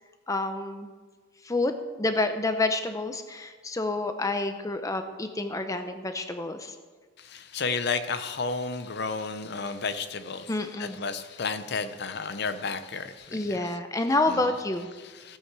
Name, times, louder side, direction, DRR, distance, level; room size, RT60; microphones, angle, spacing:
voice 1, 0.3-0.9 1.4-6.8 10.5-11.0 13.3-14.9, left 2 dB, 15° left, 8 dB, 0.6 m, -28 dB
voice 2, 7.2-13.8 14.3-14.5 14.9-15.4, left 4 dB, 55° left, 11 dB, 0.7 m, -32 dB
16.0 x 8.6 x 4.7 m, 1.4 s
head